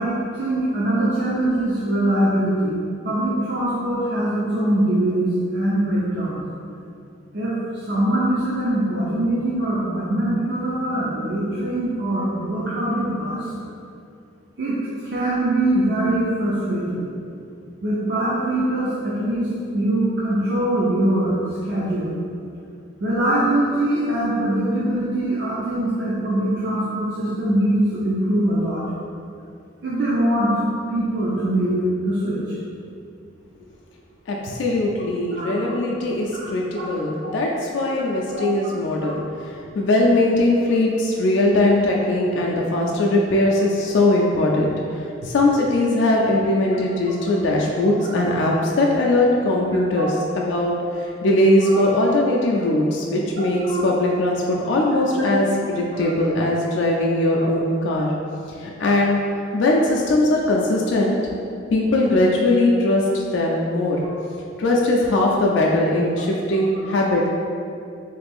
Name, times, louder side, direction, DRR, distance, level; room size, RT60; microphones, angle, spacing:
voice 1, 0.0-2.8 3.0-6.4 7.3-13.5 14.6-17.1 17.8-21.4 21.7-22.1 23.0-28.8 29.8-30.6 30.9-32.6 35.4-35.5 36.8-36.9 37.2-37.3 39.0-39.1 50.0-50.1 51.6-51.8 53.7-53.8 55.2-55.3 57.3-57.5, right 1 dB, 60° right, -8 dB, 0.5 m, -22 dB
voice 2, 34.3-58.1 58.6-59.2 59.5-61.2 61.7-64.0 64.6-67.3, left 1 dB, 65° left, -2 dB, 0.3 m, -20 dB
3.2 x 2.5 x 3.4 m, 2.5 s
head